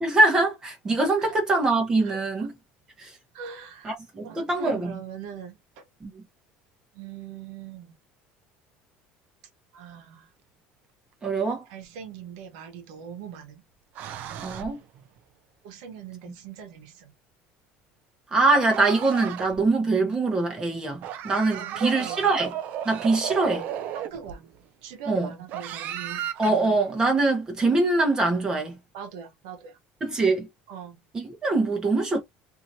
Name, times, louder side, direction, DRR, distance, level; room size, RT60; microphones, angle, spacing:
voice 1, 0.0-2.5 3.0-3.1 3.8-4.9 6.0-6.2 11.2-11.6 14.4-14.8 18.3-22.5 22.8-23.7 25.1-25.3 26.4-28.8 30.0-30.5 31.1-32.2, right 3 dB, 20° right, 1.0 m, -23 dB
voice 2, 2.0-2.5 3.3-5.8 6.9-8.0 9.7-10.3 11.7-13.6 15.6-17.1 21.5-22.3 23.9-24.5 24.8-26.3 28.9-29.8 30.7-31.0, right 7 dB, 90° right, 1.0 m, -41 dB
sound 1, 11.8-11.9 14.0-15.1 18.5-19.7 21.0-24.6 25.5-26.9, right 9 dB, 55° right, 0.5 m, -34 dB
2.9 x 2.7 x 2.7 m
cardioid pair, 145°, 3 cm